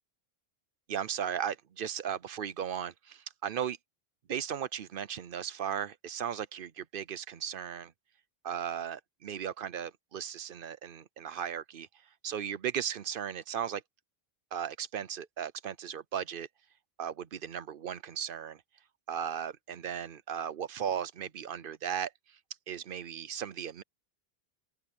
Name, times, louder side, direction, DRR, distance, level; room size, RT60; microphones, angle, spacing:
voice 1, 0.9-3.8 4.3-7.9 8.4-11.9 12.2-13.8 14.5-16.5 17.0-18.6 19.1-22.1 22.7-23.8, right 8 dB, 65° right, 0.8 m, -36 dB
open air
omnidirectional pair, 1.0 m